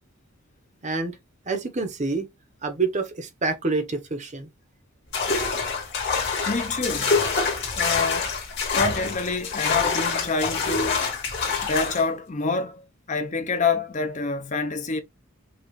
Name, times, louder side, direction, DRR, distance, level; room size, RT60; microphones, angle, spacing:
voice 1, 0.8-1.2 1.5-2.3 2.6-4.5, right 3 dB, 35° right, 0.8 m, -27 dB
sound 1, 5.1-12.0, left 5 dB, 50° left, 1.8 m, -26 dB
voice 2, 6.5-7.2 7.8-8.3 8.7-11.0 11.6-15.0, left 4 dB, 35° left, 0.6 m, -27 dB
5.6 x 2.4 x 3.1 m
head